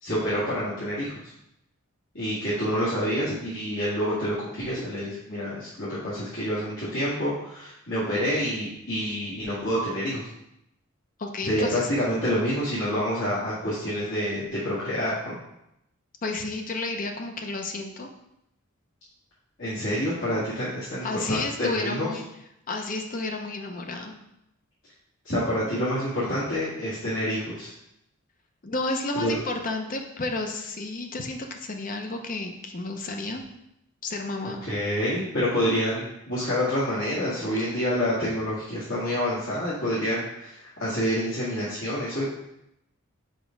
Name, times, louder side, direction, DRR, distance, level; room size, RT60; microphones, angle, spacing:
voice 1, 0.0-1.1 2.1-10.2 11.4-15.4 19.6-22.1 25.2-27.7 29.1-29.4 34.4-42.2, equal, 60° left, -11 dB, 2.0 m, -27 dB
voice 2, 11.2-11.9 16.2-18.1 21.0-22.2 22.7-24.1 28.6-33.4 34.0-34.6 37.6-37.7, left 2 dB, 40° left, 4 dB, 0.7 m, -31 dB
5.1 x 4.5 x 5.1 m, 0.81 s
head